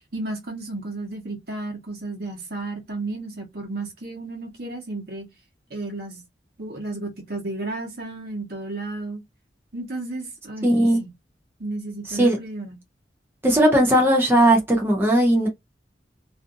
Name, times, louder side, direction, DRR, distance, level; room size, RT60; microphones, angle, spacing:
voice 1, 0.1-5.3 5.7-6.2 6.6-9.2 9.7-10.7 11.0-11.1 11.6-12.8, right 2 dB, 60° right, 1.1 m, -33 dB
voice 2, 10.6-11.0 12.1-12.4 13.4-15.5, right 1 dB, 10° right, 0.6 m, -18 dB
2.6 x 2.5 x 2.5 m
head